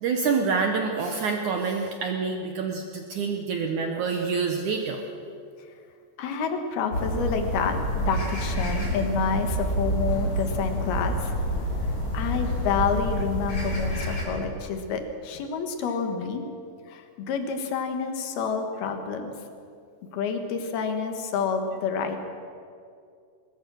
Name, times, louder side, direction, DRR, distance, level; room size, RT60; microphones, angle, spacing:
voice 1, 0.0-5.0, right 5 dB, 70° right, 3 dB, 1.8 m, -27 dB
voice 2, 6.2-11.3 12.1-16.4 16.9-19.3 20.1-22.3, left 5 dB, 65° left, 5 dB, 3.3 m, -28 dB
sound 1, 6.9-14.3, equal, 30° left, 4.0 m, -28 dB
22.0 x 20.5 x 6.4 m, 2.4 s
omnidirectional pair, 5.0 m